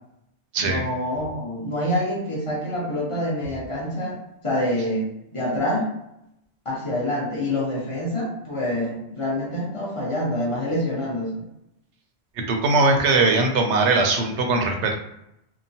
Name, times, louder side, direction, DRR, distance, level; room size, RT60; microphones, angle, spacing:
voice 1, 0.6-4.2 4.4-5.9 6.6-11.3, left 1 dB, 30° left, -6 dB, 0.8 m, -26 dB
voice 2, 12.5-14.9, right 3 dB, 85° right, 3 dB, 0.9 m, -20 dB
2.8 x 2.1 x 2.6 m, 0.81 s
omnidirectional pair, 1.1 m